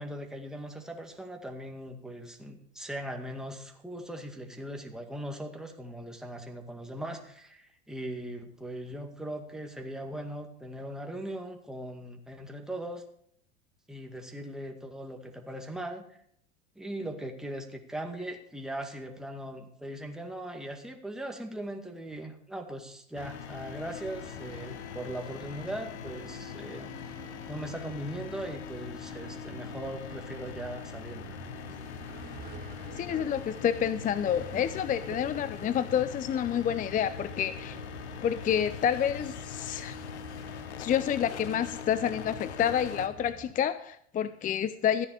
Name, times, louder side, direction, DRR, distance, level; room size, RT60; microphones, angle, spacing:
voice 1, 0.0-13.0 13.9-16.0 16.8-26.9 27.5-31.4, right 1 dB, ahead, 3 dB, 2.1 m, -39 dB
sound 1, 23.2-43.1, left 9 dB, 80° left, 0.9 m, -42 dB
sound 2, 24.1-43.5, right 4 dB, 25° right, 1.8 m, -48 dB
voice 2, 33.0-37.8 38.2-40.0 40.8-45.1, left 9 dB, 25° left, 14 dB, 0.6 m, -29 dB
14.0 x 9.8 x 5.0 m, 0.67 s
hypercardioid pair, 85°, 33 cm